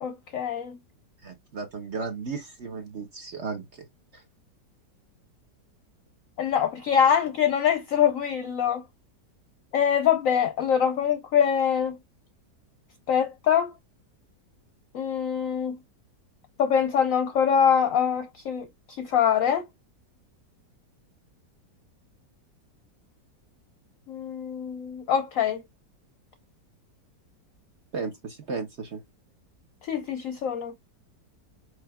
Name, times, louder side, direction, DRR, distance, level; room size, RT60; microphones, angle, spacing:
voice 1, 0.0-0.8 6.4-8.8 9.7-12.0 13.1-13.7 14.9-15.8 16.6-19.6 24.1-25.6 29.8-30.7, left 8 dB, 65° left, 0.8 m, -24 dB
voice 2, 1.2-3.9 4.1-4.2 27.9-29.0, right 4 dB, 50° right, 0.9 m, -35 dB
4.9 x 4.5 x 2.2 m
omnidirectional pair, 1.9 m